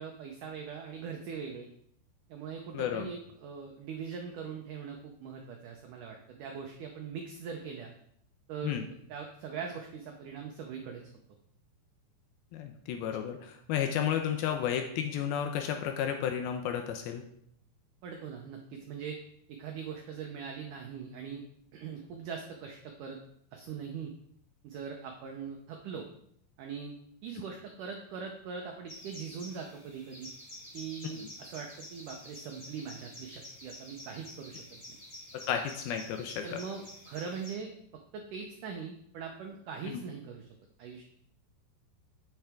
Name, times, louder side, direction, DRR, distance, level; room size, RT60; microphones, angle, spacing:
voice 1, 0.0-1.7 2.3-7.9 8.5-8.8 9.1-11.0 18.0-19.2 19.6-21.4 21.7-23.2 23.5-24.1 24.6-26.1 26.6-27.0 27.2-30.3 30.7-34.6 34.9-35.0 36.4-37.7 38.1-40.5 40.8-41.0, right 6 dB, 90° right, 2 dB, 1.8 m, -41 dB
voice 2, 2.7-3.1 8.6-8.8 12.5-17.2 31.0-31.1 35.5-36.6 39.9-40.0, left 9 dB, 80° left, 6 dB, 2.3 m, -32 dB
sound 1, 28.9-37.5, left 1 dB, 30° left, 0.8 m, -49 dB
8.9 x 7.9 x 3.5 m, 0.69 s
omnidirectional pair, 4.8 m